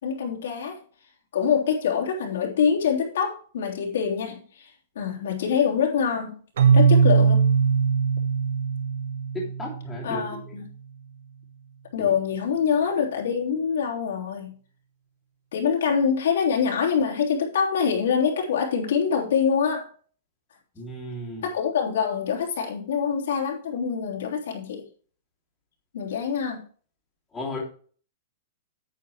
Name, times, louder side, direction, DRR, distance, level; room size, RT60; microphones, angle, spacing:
voice 1, 0.0-0.8 1.3-6.3 6.7-7.4 10.0-10.7 11.9-14.5 15.5-19.9 21.4-24.8 25.9-26.6, left 7 dB, 70° left, -1 dB, 3.3 m, -25 dB
Keyboard (musical), 6.6-10.3, right 6 dB, 70° right, 1.5 m, -20 dB
voice 2, 9.3-10.2 12.0-12.1 20.7-21.4 27.3-27.6, left 1 dB, 5° left, -7 dB, 3.1 m, -34 dB
9.6 x 9.4 x 3.1 m, 0.43 s
supercardioid pair, 180°, 0 cm